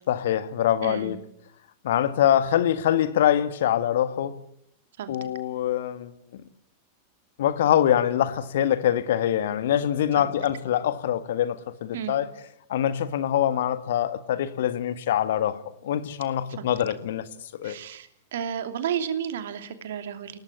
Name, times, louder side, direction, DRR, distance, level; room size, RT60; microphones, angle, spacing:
voice 1, 0.1-1.2 1.8-4.4 5.1-6.4 7.4-12.3 12.7-17.8, left 11 dB, 60° left, 1.5 m, -24 dB
voice 2, 0.8-1.2 5.0-5.2 10.2-10.3 11.9-12.2 16.6-16.7 17.6-20.4, right 9 dB, 60° right, 2.7 m, -32 dB
29.0 x 18.0 x 8.4 m
figure-of-eight pair, 90°, 0 cm